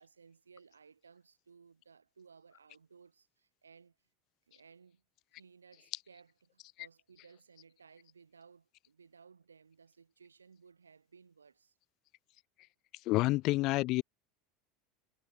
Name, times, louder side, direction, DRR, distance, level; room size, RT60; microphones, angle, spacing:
voice 1, 0.0-3.9 4.5-5.0 5.4-11.8, right 5 dB, 80° right, 6.2 m, -60 dB
voice 2, 13.1-14.0, left 20 dB, 50° left, 0.3 m, -28 dB
figure-of-eight pair, 75°, 0 cm